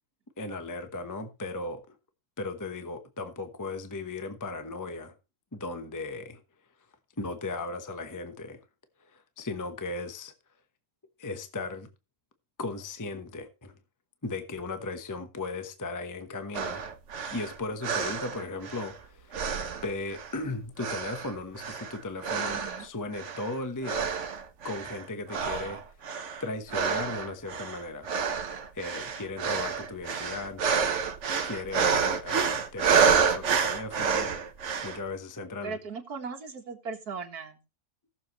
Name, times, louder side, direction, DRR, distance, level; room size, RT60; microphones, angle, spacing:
voice 1, 0.4-1.8 2.4-5.1 5.5-6.4 7.2-8.6 9.0-10.3 11.2-11.9 12.6-13.7 14.2-16.9 17.3-19.4 19.8-24.1 24.6-26.1 26.4-28.1 28.7-30.6 31.4-34.4 34.8-35.8, left 3 dB, 15° left, 0.8 m, -37 dB
sound 1, 16.5-19.0 19.3-20.5 20.8-22.9 23.1-23.5 23.8-25.0 25.3-35.0, right 6 dB, 50° right, 1.2 m, -29 dB
voice 2, 22.5-22.9 35.6-37.6, right 5 dB, 70° right, 2.2 m, -38 dB
17.5 x 7.2 x 3.0 m
omnidirectional pair, 1.7 m